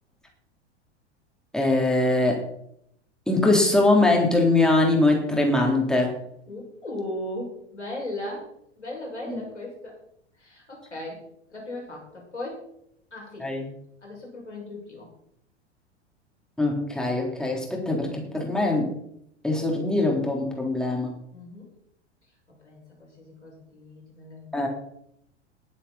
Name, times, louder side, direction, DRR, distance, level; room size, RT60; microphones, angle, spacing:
voice 1, 1.5-2.4 3.3-6.2 9.3-9.4 13.4-13.7 16.6-18.9 19.4-21.1 24.5-24.7, left 2 dB, ahead, -1 dB, 3.9 m, -22 dB
voice 2, 6.5-8.5 8.8-9.9 10.4-11.2 11.5-12.6 13.1-13.5 14.0-15.1 21.3-21.7 22.6-24.7, left 1 dB, 80° left, -2 dB, 6.3 m, -37 dB
20.0 x 8.4 x 4.3 m, 0.72 s
figure-of-eight pair, 90°, 34 cm